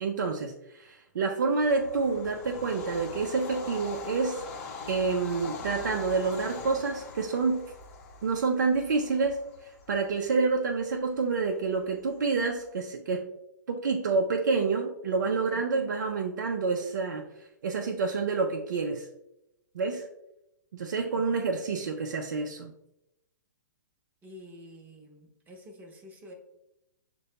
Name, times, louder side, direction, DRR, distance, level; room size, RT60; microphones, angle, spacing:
voice 1, 0.0-4.4 4.9-7.6 8.2-9.4 9.9-13.3 13.7-17.3 17.6-19.1 19.7-20.1 20.7-22.7, right 4 dB, 70° right, 1 dB, 0.5 m, -28 dB
Bird vocalization bird call bird song / Train, 1.6-12.8, left 4 dB, 45° left, 0.8 m, -43 dB
voice 2, 15.5-15.9 21.1-21.4 24.2-26.3, left 1 dB, 15° right, 1 dB, 0.8 m, -49 dB
6.6 x 2.2 x 2.7 m, 0.86 s
hypercardioid pair, 120°, 10 cm